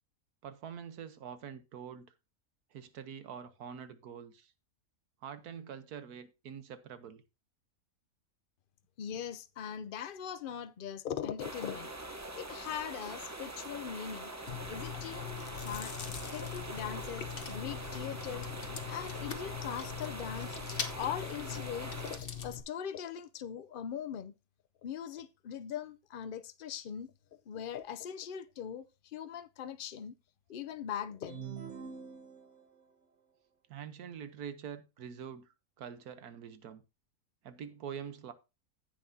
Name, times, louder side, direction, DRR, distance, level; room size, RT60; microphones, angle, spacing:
voice 1, 0.4-2.1 2.7-4.5 5.2-7.2 33.7-36.8 37.4-38.3, right 8 dB, 85° right, 1.5 m, -45 dB
voice 2, 9.0-11.9 12.4-14.3 14.7-15.9 16.3-18.5 18.9-20.6 20.9-24.3 24.8-27.1 27.5-30.2 30.5-31.5, left 8 dB, 60° left, 0.5 m, -41 dB
sound 1, 11.4-22.2, right 1 dB, 15° right, 0.8 m, -44 dB
Chewing mastication, 14.5-22.6, left 8 dB, 40° left, 1.1 m, -41 dB
sound 2, 31.3-32.9, right 7 dB, 55° right, 1.2 m, -45 dB
15.0 x 5.6 x 2.7 m
omnidirectional pair, 1.6 m